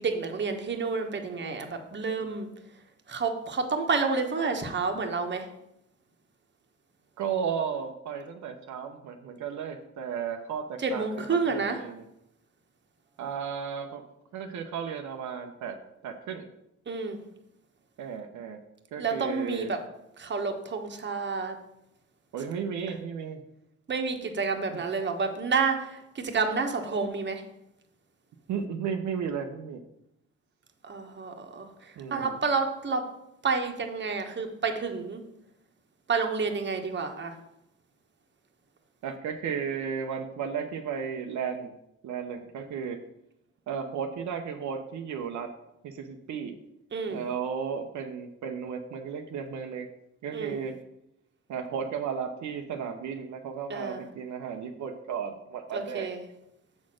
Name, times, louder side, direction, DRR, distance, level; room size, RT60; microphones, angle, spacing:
voice 1, 0.0-2.5 3.1-5.5 10.8-11.8 16.9-17.2 19.0-19.8 20.2-21.6 23.9-27.4 30.8-33.1 33.4-35.2 36.1-37.3 46.9-47.2 50.3-50.6 53.7-54.0 55.7-56.2, right 4 dB, 35° right, 5 dB, 1.2 m, -29 dB
voice 2, 7.2-12.0 13.2-14.0 14.3-15.8 16.0-16.5 18.0-18.6 18.9-19.7 22.3-23.4 24.7-24.8 28.5-29.8 32.0-32.4 39.0-41.7 42.0-43.0 43.7-45.5 45.8-46.5 47.1-49.9 50.2-50.7 51.5-56.1, right 7 dB, 70° right, 4 dB, 0.8 m, -34 dB
7.1 x 4.3 x 6.3 m, 0.85 s
cardioid pair, 90°, 30 cm